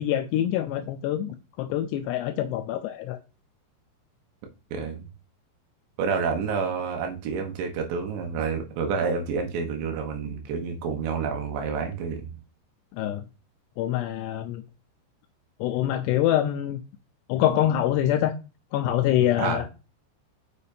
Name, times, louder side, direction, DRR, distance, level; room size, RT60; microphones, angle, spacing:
voice 1, 0.0-3.2 13.0-13.2 13.8-14.6 15.6-16.8 17.3-18.3 18.7-19.7, left 12 dB, 80° left, 2.5 m, -25 dB
voice 2, 4.7-5.1 6.0-12.3 19.4-19.7, right 5 dB, 75° right, 3.4 m, -29 dB
6.8 x 6.8 x 2.7 m
omnidirectional pair, 5.3 m